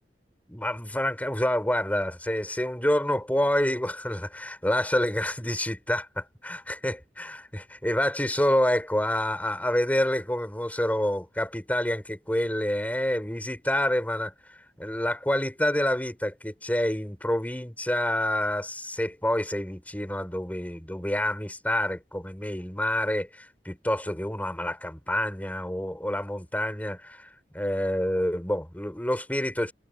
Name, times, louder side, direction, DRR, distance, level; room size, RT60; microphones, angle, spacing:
voice 1, 0.5-14.3 14.8-27.3 27.5-29.7, left 1 dB, 10° left, 4.3 m, -28 dB
head